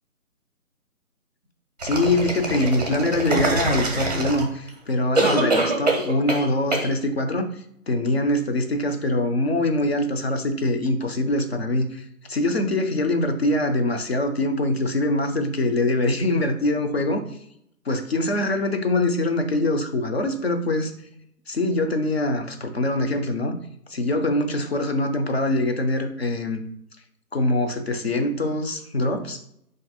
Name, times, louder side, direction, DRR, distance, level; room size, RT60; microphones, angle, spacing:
voice 1, 1.8-17.2 17.9-20.9 21.5-23.6 23.9-26.6 27.3-29.4, left 1 dB, 45° left, 6 dB, 0.5 m, -23 dB
sound 1, 1.8-4.7 5.1-6.4 6.7-6.9, right 2 dB, 30° right, 0.6 m, -24 dB
3.7 x 2.6 x 4.1 m, 0.73 s
figure-of-eight pair, 150°, 45 cm